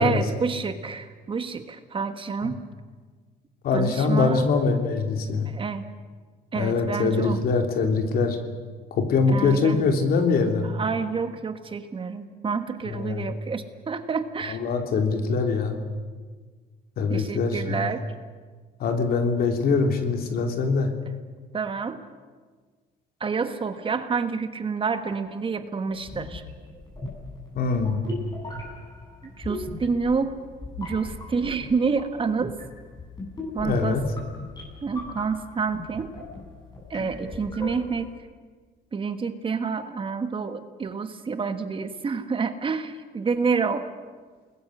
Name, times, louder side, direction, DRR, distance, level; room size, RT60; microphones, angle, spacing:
voice 1, 0.0-2.6 3.7-4.4 5.5-5.9 6.5-7.4 9.3-9.8 10.6-14.6 17.1-18.0 21.5-22.0 23.2-26.4 29.2-30.3 30.8-32.5 33.5-34.0 34.8-36.1 36.9-38.1 38.9-43.9, right 5 dB, 30° right, 9 dB, 1.6 m, -28 dB
voice 2, 3.6-5.5 6.5-8.4 8.9-10.7 12.9-13.3 14.5-15.8 17.0-17.9 18.8-20.9 27.5-28.0 33.6-34.0, left 4 dB, 65° left, 5 dB, 3.2 m, -23 dB
sound 1, 26.0-38.1, left 2 dB, 25° left, 7.6 m, -39 dB
29.0 x 20.5 x 6.5 m, 1.5 s
cardioid pair, 110°, 17 cm